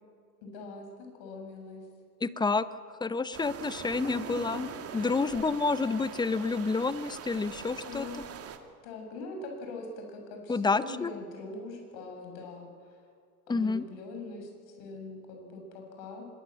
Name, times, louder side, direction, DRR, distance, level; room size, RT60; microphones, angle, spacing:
voice 1, 0.4-1.8 4.0-4.6 4.9-5.4 7.8-8.5 8.8-13.0 13.5-16.3, left 3 dB, 55° left, 3 dB, 7.4 m, -42 dB
voice 2, 2.2-2.7 3.0-4.7 4.9-8.1 10.5-11.1 13.5-13.8, left 4 dB, 10° left, 15 dB, 0.7 m, -29 dB
sound 1, 3.3-8.6, right 7 dB, 30° right, 2.2 m, -43 dB
24.5 x 21.5 x 7.6 m, 2.2 s
hypercardioid pair, 100°, 47 cm